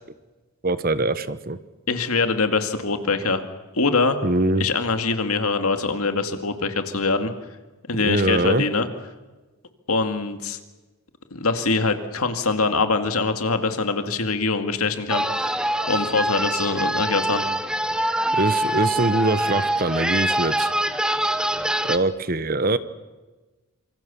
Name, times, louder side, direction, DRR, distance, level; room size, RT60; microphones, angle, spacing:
voice 1, 0.6-1.6 4.2-4.6 8.0-8.6 18.3-20.7 21.9-22.8, right 2 dB, 40° right, 14 dB, 1.0 m, -23 dB
voice 2, 1.9-3.4 3.7-4.2 4.6-7.3 7.9-8.9 9.9-10.6 11.3-15.6 15.9-17.4, left 4 dB, 80° left, 7 dB, 2.2 m, -23 dB
sound 1, 15.1-22.0, right 1 dB, 5° right, 0.8 m, -24 dB
26.5 x 24.5 x 7.0 m, 1.2 s
head